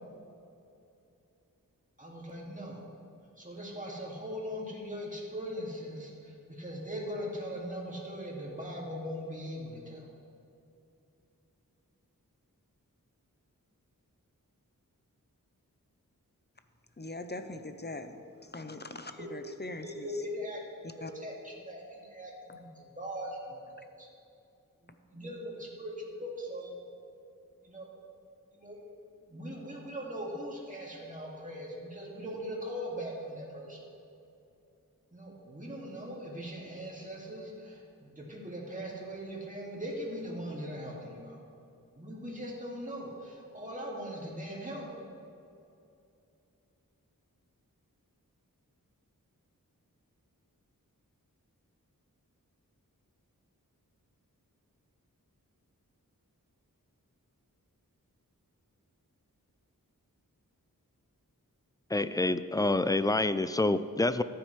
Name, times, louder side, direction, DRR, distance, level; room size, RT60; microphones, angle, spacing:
voice 1, 2.0-2.8 3.4-10.1 19.2-19.3 19.8-20.6 21.0-24.1 24.8-26.8 27.6-27.9 28.5-28.8 29.3-33.8 35.1-41.4 41.9-44.9, equal, 20° right, -4 dB, 2.2 m, -40 dB
voice 2, 17.0-20.2 20.8-21.1 22.5-22.6, left 2 dB, 30° left, 8 dB, 0.7 m, -42 dB
voice 3, 61.9-64.2, left 2 dB, 10° left, 13 dB, 0.3 m, -27 dB
14.5 x 9.1 x 3.2 m, 2.7 s
wide cardioid pair, 50°, 35 cm